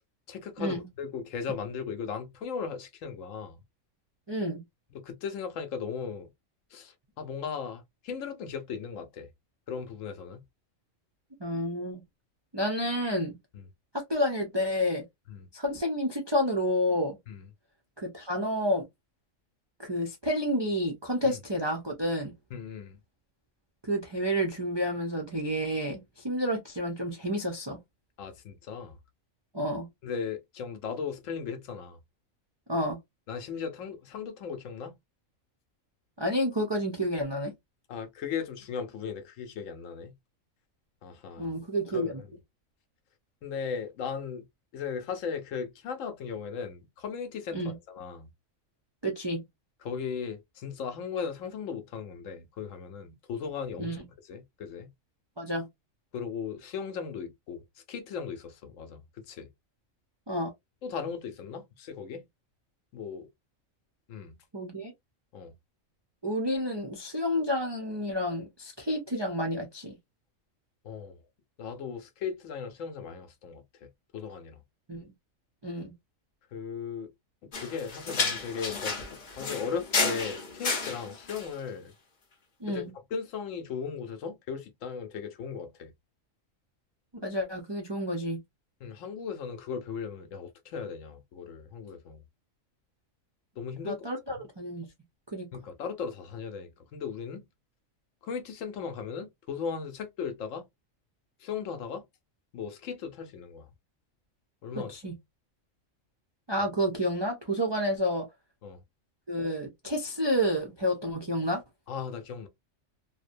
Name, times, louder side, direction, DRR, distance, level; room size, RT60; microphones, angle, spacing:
voice 1, 0.3-3.6 4.9-6.3 6.7-9.3 9.7-10.4 13.5-13.7 15.3-15.5 17.3-17.5 21.2-21.4 22.5-23.0 28.2-29.0 30.0-32.0 33.3-35.0 37.9-40.1 41.0-41.5 41.9-42.1 43.4-44.5 44.7-48.3 49.8-54.0 54.2-54.9 56.1-59.5 60.8-62.2 62.9-63.3 64.1-64.3 65.3-65.5 70.8-71.2 71.6-74.6 76.5-77.1 77.5-81.9 82.7-82.8 83.1-85.9 88.8-92.2 93.6-94.0 94.3-94.4 95.5-97.4 98.2-100.7 101.4-102.0 102.5-103.7 104.6-104.9 108.6-108.8 111.9-112.5, left 6 dB, 75° left, 1.0 m, -37 dB
voice 2, 4.3-4.6 11.4-12.0 12.5-13.4 13.9-15.0 15.5-17.2 18.0-18.8 19.8-22.3 23.8-27.8 29.5-29.9 32.7-33.0 36.2-37.5 41.4-42.2 47.5-47.7 49.0-49.4 53.8-54.0 55.4-55.7 60.3-60.5 64.5-64.9 66.2-70.0 74.9-75.1 75.6-75.9 82.6-82.9 87.2-88.4 93.8-94.9 95.3-95.5 104.7-105.1 106.5-108.3 109.3-111.6, equal, 45° right, 0.3 m, -30 dB
sound 1, 77.5-81.5, left 4 dB, 45° left, 0.7 m, -31 dB
2.6 x 2.1 x 2.4 m
omnidirectional pair, 1.4 m